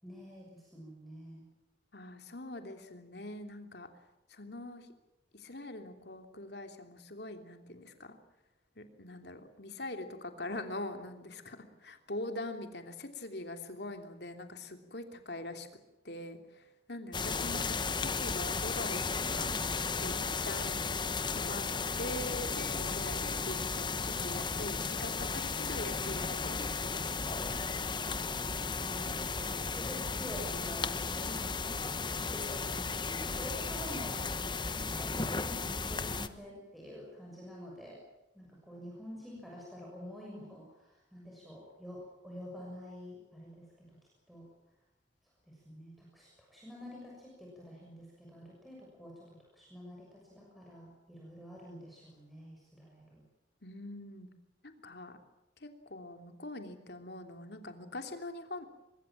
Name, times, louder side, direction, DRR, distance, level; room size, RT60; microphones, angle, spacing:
voice 1, 0.0-1.4 28.8-38.0 38.3-44.0 44.3-44.5 45.5-53.2, equal, ahead, -3 dB, 6.6 m, -48 dB
voice 2, 1.9-3.9 4.3-4.9 5.3-8.2 8.7-15.7 16.0-19.6 20.0-20.8 21.3-21.7 22.0-27.3 53.6-54.3 54.6-55.2 55.6-58.6, left 1 dB, 65° left, 6 dB, 3.1 m, -43 dB
sound 1, 17.1-36.3, left 4 dB, 25° left, 1.1 m, -35 dB
23.5 x 22.5 x 7.5 m, 0.99 s
head